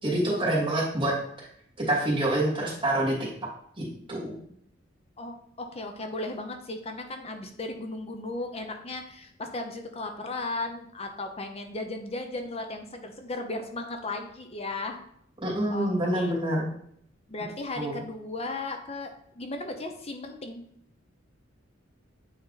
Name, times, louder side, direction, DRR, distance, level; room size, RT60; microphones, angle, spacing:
voice 1, 0.0-1.1 1.9-3.1 3.8-4.3 15.4-16.7 17.7-18.0, right 1 dB, 25° right, -6 dB, 2.6 m, -26 dB
voice 2, 5.2-15.0 15.7-15.9 16.1-16.3 17.3-20.6, left 2 dB, 30° left, 5 dB, 0.7 m, -36 dB
8.8 x 3.5 x 4.1 m, 0.68 s
head